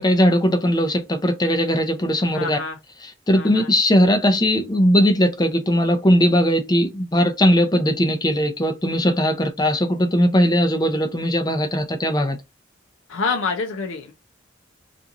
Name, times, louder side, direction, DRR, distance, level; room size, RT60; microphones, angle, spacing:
voice 1, 0.0-2.6 3.0-12.4, equal, 20° left, 0.4 m, -19 dB
voice 2, 2.3-2.8 3.3-3.7 13.1-14.1, left 4 dB, 90° left, 0.5 m, -27 dB
2.8 x 2.5 x 2.4 m
head